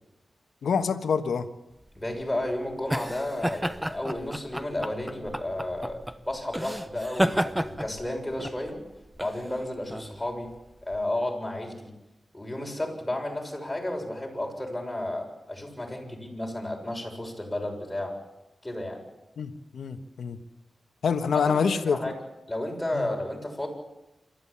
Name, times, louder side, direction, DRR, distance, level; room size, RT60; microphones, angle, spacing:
voice 1, 0.6-1.5 19.4-20.4 21.0-22.0 22.9-23.1, left 6 dB, 85° left, 9 dB, 1.3 m, -26 dB
sound 1, 1.8-11.0, equal, 5° right, 0.9 m, -32 dB
voice 2, 2.0-8.8 9.2-10.5 10.9-11.9 12.3-18.2 18.6-19.0 21.3-22.1 22.5-23.7, left 1 dB, 10° left, 0 dB, 6.8 m, -32 dB
27.0 x 13.0 x 8.6 m, 1.0 s
cardioid pair, 75°, 0 cm